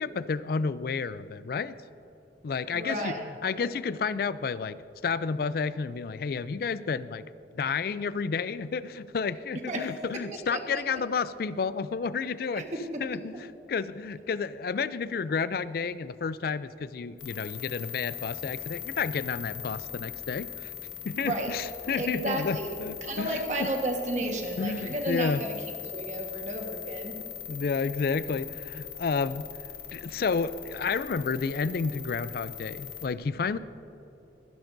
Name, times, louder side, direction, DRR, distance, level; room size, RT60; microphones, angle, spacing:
voice 1, 0.0-1.7 2.4-3.1 3.4-4.8 5.0-7.3 7.5-12.7 13.0-20.7 21.0-23.7 24.6-25.4 27.5-29.4 29.9-33.6, left 5 dB, 55° left, 15 dB, 0.3 m, -31 dB
voice 2, 2.7-3.2 9.7-9.9 10.5-10.6 12.6-13.0 21.2-21.5 22.0-22.7 23.0-25.6 25.8-27.2, right 1 dB, 40° right, 2 dB, 1.4 m, -32 dB
sound 1, 17.2-33.1, left 10 dB, 85° left, 1.4 m, -41 dB
24.0 x 10.5 x 2.6 m, 3.0 s
head